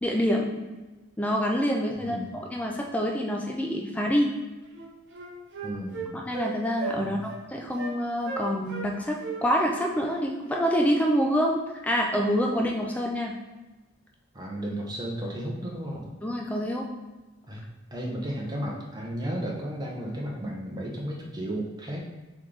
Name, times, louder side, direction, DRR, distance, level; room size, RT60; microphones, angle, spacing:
voice 1, 0.0-0.7 1.2-4.3 6.1-7.2 7.5-11.6 11.8-13.3 16.2-16.9, equal, 5° left, 0 dB, 0.3 m, -26 dB
voice 2, 2.0-2.4 5.6-6.2 6.9-7.3 14.3-16.1 17.5-17.6 17.9-22.0, right 1 dB, 20° right, -2 dB, 0.7 m, -34 dB
Wind instrument woodwind instrument, 4.3-4.4 4.7-6.5 6.8-7.0 7.3-7.4 7.8-8.0 8.2-8.9 9.2-11.1, right 4 dB, 55° right, 0.7 m, -36 dB
3.5 x 3.1 x 3.8 m, 1.2 s
head